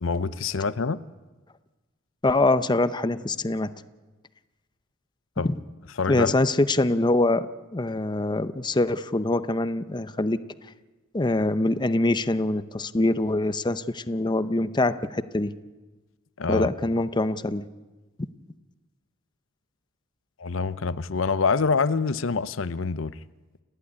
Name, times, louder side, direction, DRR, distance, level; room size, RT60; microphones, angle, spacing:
voice 1, 0.0-1.0 5.4-5.5 6.0-6.4 16.4-16.7 20.4-23.1, left 4 dB, 75° left, 15 dB, 0.6 m, -26 dB
voice 2, 2.2-3.7 5.4-5.6 6.1-7.5 7.7-10.4 11.1-15.5 16.5-17.7, left 2 dB, 20° left, 12 dB, 0.7 m, -24 dB
30.0 x 11.5 x 9.7 m, 1.2 s
head